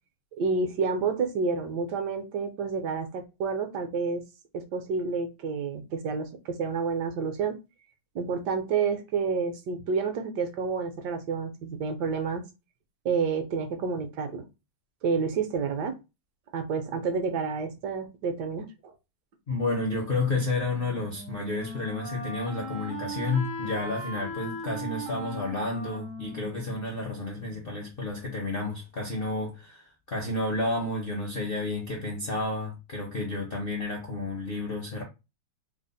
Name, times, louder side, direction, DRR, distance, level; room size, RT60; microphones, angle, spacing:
voice 1, 0.4-4.2 4.5-7.6 8.1-12.4 13.0-14.5 15.0-16.0 16.5-18.9, right 5 dB, 75° right, 1.2 m, -29 dB
voice 2, 19.5-35.0, left 2 dB, 55° left, 0.6 m, -31 dB
Wind instrument woodwind instrument, 20.6-27.5, equal, 35° right, 0.4 m, -39 dB
3.3 x 2.0 x 3.8 m
omnidirectional pair, 2.0 m